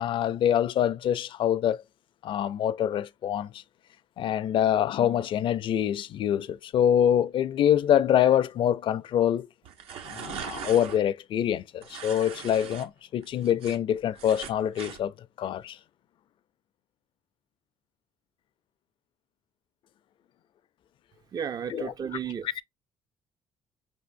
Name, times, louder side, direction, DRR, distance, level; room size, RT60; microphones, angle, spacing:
voice 1, 0.0-1.8 2.2-3.6 4.2-9.5 10.0-15.1 15.4-15.8 21.7-21.9, left 10 dB, 60° left, 0.4 m, -25 dB
sound 1, 9.6-11.0 11.8-12.9 13.2-15.0, right 8 dB, 75° right, 0.8 m, -40 dB
voice 2, 21.3-22.5, right 7 dB, 40° right, 0.4 m, -33 dB
5.1 x 3.4 x 2.6 m
supercardioid pair, 80°, 10 cm